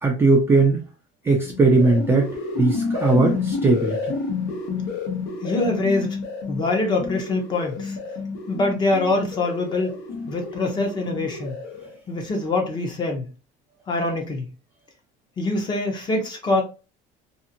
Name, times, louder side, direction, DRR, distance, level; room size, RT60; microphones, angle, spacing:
voice 1, 0.0-0.8 1.2-2.3 2.6-4.0, right 3 dB, 15° right, 0 dB, 0.3 m, -18 dB
sound 1, 1.4-12.0, left 4 dB, 75° left, 1.1 m, -30 dB
voice 2, 5.4-6.2 6.5-8.0 8.5-9.9 10.3-11.5 12.1-13.3 13.9-14.5 15.4-16.6, left 2 dB, 25° left, 2 dB, 0.7 m, -24 dB
2.6 x 2.5 x 2.7 m, 0.33 s
cardioid pair, 165°, 19 cm